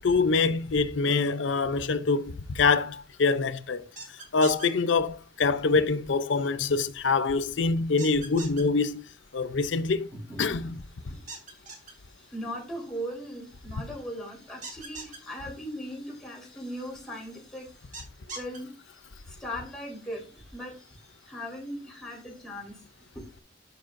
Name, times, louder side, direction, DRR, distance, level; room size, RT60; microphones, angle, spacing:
voice 1, 0.0-3.9 4.3-9.0 9.3-10.1 10.4-10.8, left 4 dB, 85° left, 0.6 m, -25 dB
sound 1, 4.0-4.7 8.0-8.6 11.3-11.9 14.6-15.2 17.9-18.6, right 3 dB, 45° right, 2.0 m, -40 dB
voice 2, 11.0-17.7 18.3-18.7 19.0-22.8 23.1-23.4, equal, 5° left, 3.8 m, -39 dB
12.0 x 5.2 x 2.5 m
head